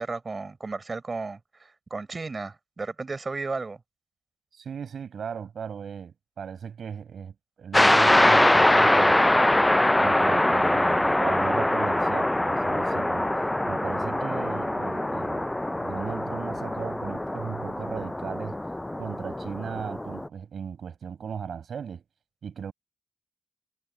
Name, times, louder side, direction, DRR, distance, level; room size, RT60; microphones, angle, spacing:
voice 1, 0.0-3.8, right 3 dB, 40° right, 5.7 m, -34 dB
voice 2, 4.5-9.5 10.0-18.6 19.0-22.0 22.4-22.7, right 7 dB, 70° right, 6.9 m, -37 dB
sound 1, 7.7-20.3, left 1 dB, 15° left, 0.5 m, -23 dB
supercardioid pair, 45°, 0 cm